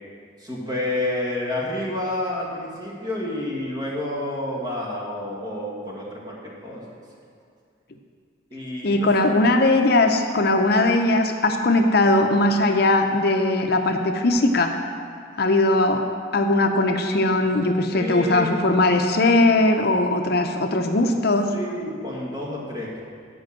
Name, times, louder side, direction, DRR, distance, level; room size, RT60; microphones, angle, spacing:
voice 1, 0.4-6.8 8.5-9.1 17.9-18.7 21.5-23.0, left 1 dB, 20° right, -4 dB, 1.9 m, -29 dB
voice 2, 8.8-14.7 15.4-16.0 16.3-21.5, left 2 dB, 55° left, 4 dB, 0.6 m, -19 dB
10.0 x 5.3 x 7.5 m, 2.3 s
head